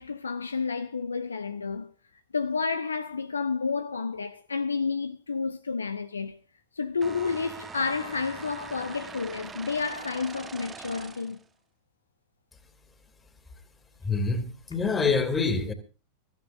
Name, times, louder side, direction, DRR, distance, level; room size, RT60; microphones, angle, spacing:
voice 1, 0.0-1.9 2.3-6.4 6.8-11.4, left 5 dB, 75° left, 0.7 m, -30 dB
sound 1, 7.0-11.4, right 5 dB, 20° right, 1.2 m, -43 dB
voice 2, 14.0-15.7, left 4 dB, 15° left, 2.7 m, -26 dB
23.5 x 14.5 x 2.6 m
figure-of-eight pair, 90°, 0 cm